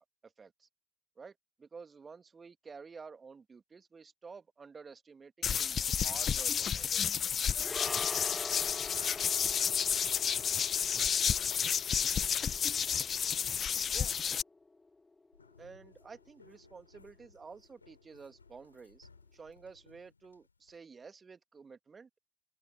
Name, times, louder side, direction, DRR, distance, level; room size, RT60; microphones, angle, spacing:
voice 1, 0.2-0.7 1.2-7.2 13.9-14.1 15.6-22.2, right 5 dB, 35° right, 2.0 m, -51 dB
sound 1, 5.4-14.4, left 8 dB, 45° left, 0.8 m, -31 dB
sound 2, 7.5-16.0 16.3-16.5, left 3 dB, 20° left, 1.7 m, -46 dB
voice 2, 8.5-12.6, right 5 dB, 85° right, 5.1 m, -64 dB
sound 3, 15.3-20.8, left 4 dB, 85° left, 4.1 m, -62 dB
figure-of-eight pair, 45°, 0 cm